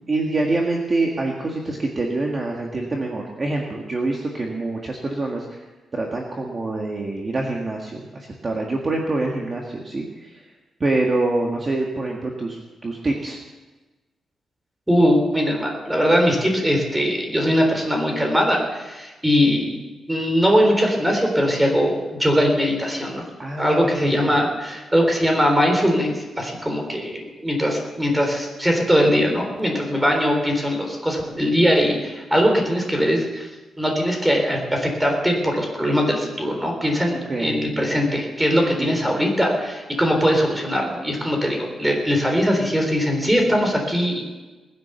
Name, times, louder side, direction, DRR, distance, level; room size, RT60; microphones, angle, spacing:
voice 1, 0.0-5.6 5.9-10.5 10.8-13.4 23.4-24.2 37.1-37.5 38.8-39.0, right 2 dB, 30° right, 0 dB, 1.7 m, -26 dB
voice 2, 14.9-19.8 20.1-23.2 23.6-33.5 33.8-44.2, equal, 5° right, 2 dB, 3.8 m, -21 dB
20.0 x 10.5 x 7.0 m, 1.2 s
wide cardioid pair, 150°, 0 cm